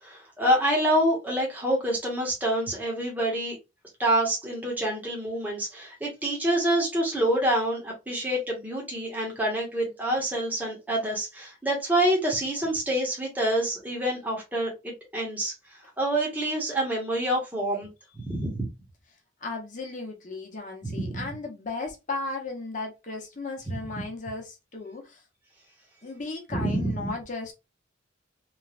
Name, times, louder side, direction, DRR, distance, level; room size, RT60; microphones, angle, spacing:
voice 1, 0.0-3.6 4.0-15.5 16.0-17.9 18.2-18.7 20.8-21.2 23.8-23.9 26.5-27.1, right 1 dB, 10° right, 0.9 m, -27 dB
voice 2, 19.4-25.2 26.0-27.5, left 3 dB, 40° left, 0.8 m, -35 dB
3.1 x 2.3 x 2.4 m
head